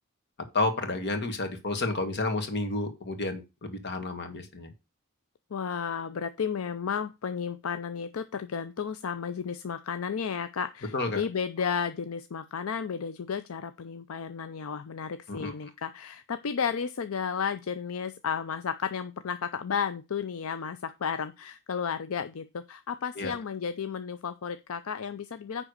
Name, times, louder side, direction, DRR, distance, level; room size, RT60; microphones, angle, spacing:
voice 1, 0.5-4.7 10.9-11.2 15.3-15.5 23.2-23.4, left 2 dB, 55° left, 6 dB, 1.9 m, -30 dB
voice 2, 5.5-25.6, left 6 dB, 70° left, 11 dB, 0.5 m, -33 dB
9.8 x 3.7 x 6.5 m, 0.26 s
head